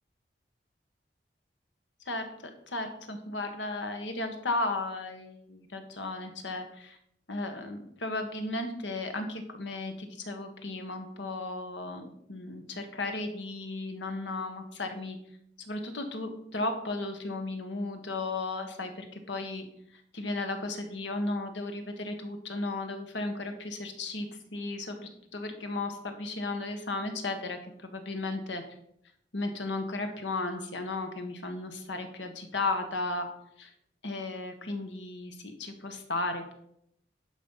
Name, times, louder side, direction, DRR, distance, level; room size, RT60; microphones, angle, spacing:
voice 1, 2.7-7.0 7.3-15.2 15.6-19.6 19.9-28.6 29.3-33.3 33.6-33.7 34.0-36.5, left 2 dB, 90° left, 6 dB, 1.6 m, -35 dB
11.5 x 5.3 x 5.7 m, 0.72 s
head